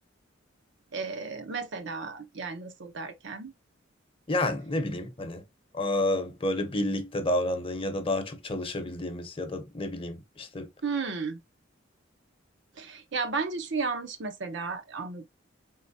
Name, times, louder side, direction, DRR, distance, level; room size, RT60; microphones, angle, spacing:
voice 1, 0.9-3.5 10.8-11.4 12.8-15.3, right 4 dB, 70° right, 0.8 m, -33 dB
voice 2, 4.3-5.4 5.7-10.7, left 1 dB, 30° left, 0.8 m, -30 dB
4.3 x 3.7 x 2.7 m
head